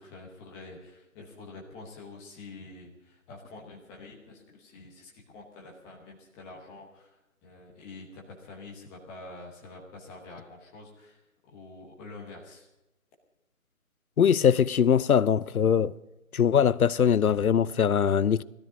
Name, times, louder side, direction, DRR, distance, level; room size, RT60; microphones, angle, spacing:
voice 1, 0.0-11.2 11.5-12.7, left 3 dB, 5° left, 1.0 m, -47 dB
voice 2, 14.2-15.9 16.3-18.4, left 8 dB, 90° left, 0.6 m, -22 dB
18.0 x 13.0 x 5.1 m
figure-of-eight pair, 155°, 42 cm